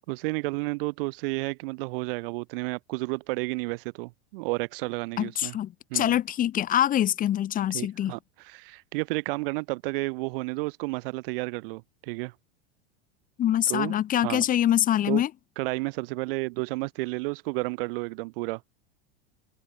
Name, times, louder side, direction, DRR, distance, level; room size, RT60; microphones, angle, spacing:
voice 1, 0.1-5.6 5.9-6.2 7.7-12.3 13.7-13.9 14.2-14.4 15.0-15.2 15.6-18.6, right 25 dB, 65° right, 2.7 m, -31 dB
voice 2, 5.2-8.1 13.4-15.3, left 11 dB, 30° left, 0.7 m, -24 dB
supercardioid pair, 110°, 30 cm